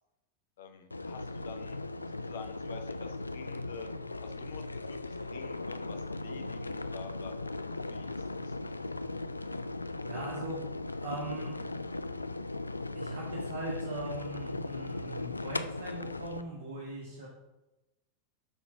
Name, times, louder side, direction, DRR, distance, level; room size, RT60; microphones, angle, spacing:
voice 1, 0.6-1.8 2.1-3.9 4.2-7.3 7.9-8.5, left 6 dB, 60° left, 8 dB, 0.9 m, -48 dB
sound 1, 0.9-16.4, left 2 dB, 80° left, 0.3 m, -38 dB
voice 2, 10.0-10.6 11.0-11.5 12.9-17.3, right 2 dB, 60° right, -4 dB, 1.9 m, -40 dB
8.0 x 6.3 x 3.5 m, 1.0 s
figure-of-eight pair, 90°, 0 cm